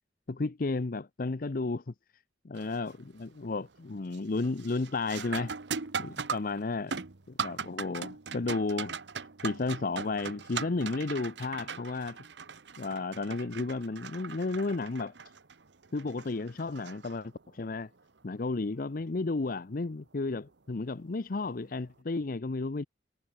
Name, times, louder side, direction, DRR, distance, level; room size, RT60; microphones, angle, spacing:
voice 1, 0.3-1.8 2.4-5.5 6.0-7.0 7.3-8.9 9.4-12.2 12.8-15.1 15.9-17.9 18.2-22.9, left 3 dB, 50° left, 0.7 m, -33 dB
sound 1, 2.6-2.9 3.4-3.8 4.1-17.6 20.2-20.3 21.1-21.3, right 5 dB, 85° right, 1.2 m, -40 dB
head